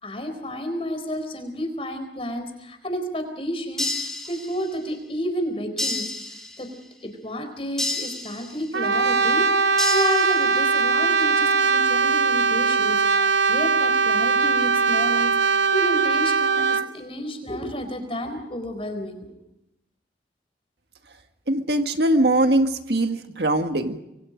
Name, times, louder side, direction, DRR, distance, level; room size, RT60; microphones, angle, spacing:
voice 1, 0.0-6.1 6.6-6.7 7.0-19.3, equal, 30° left, 7 dB, 4.1 m, -31 dB
sound 1, 3.8-4.8 5.8-6.8 7.8-8.8 9.8-10.8, left 2 dB, 5° left, 2.9 m, -30 dB
Brass instrument, 8.7-16.9, right 5 dB, 90° right, 0.9 m, -20 dB
voice 2, 21.5-24.0, right 1 dB, 65° right, 6 dB, 1.8 m, -21 dB
26.5 x 23.5 x 5.2 m, 0.85 s
head